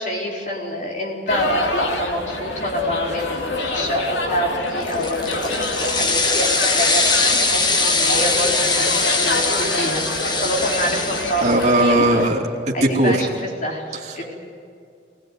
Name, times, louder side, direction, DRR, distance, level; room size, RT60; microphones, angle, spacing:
voice 1, 0.0-10.1 10.3-12.1 12.7-13.3 13.6-14.3, equal, 40° left, -1 dB, 4.5 m, -26 dB
sound 1, 1.3-12.3, left 2 dB, 75° left, 2.7 m, -26 dB
sound 2, 4.8-11.8, left 3 dB, 25° left, 1.3 m, -21 dB
voice 2, 11.4-13.2, right 1 dB, 40° right, -1 dB, 2.9 m, -18 dB
22.0 x 19.5 x 9.5 m, 2.4 s
head